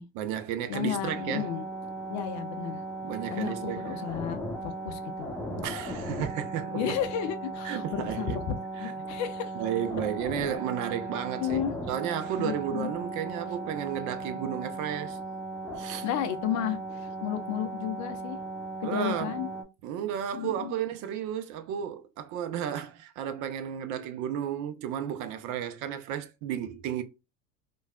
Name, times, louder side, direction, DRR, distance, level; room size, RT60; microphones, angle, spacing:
voice 1, 0.1-1.5 3.0-4.0 5.6-6.9 7.6-8.4 8.8-8.9 9.5-11.6 11.9-15.2 15.8-16.1 18.8-19.4 19.8-27.0, right 9 dB, 45° right, 0.6 m, -33 dB
voice 2, 0.7-1.6 2.1-2.8 3.3-5.3 6.7-8.5 8.8-9.6 11.4-11.7 12.4-12.9 16.0-18.4 18.8-19.5 20.3-20.8, left 10 dB, 40° left, 0.5 m, -33 dB
sound 1, 1.1-19.6, right 2 dB, 5° left, 0.9 m, -37 dB
3.2 x 2.3 x 2.3 m
hypercardioid pair, 80°, 43 cm